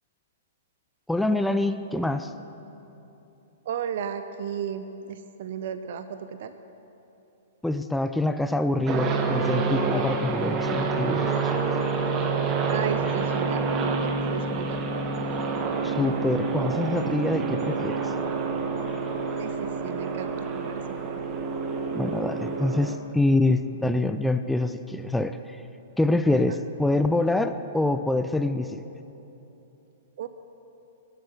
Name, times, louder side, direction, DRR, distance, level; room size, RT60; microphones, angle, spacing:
voice 1, 1.1-2.3 7.6-11.6 15.8-18.1 21.9-25.4 26.0-28.8, left 2 dB, 5° left, 9 dB, 0.5 m, -25 dB
voice 2, 3.7-6.5 12.7-15.0 19.4-21.2 26.3-26.6 30.2-30.3, right 8 dB, 60° right, 10 dB, 0.7 m, -34 dB
sound 1, 8.9-23.0, right 4 dB, 30° right, 1.5 m, -27 dB
21.0 x 8.4 x 7.5 m, 3.0 s
hypercardioid pair, 115°, 0 cm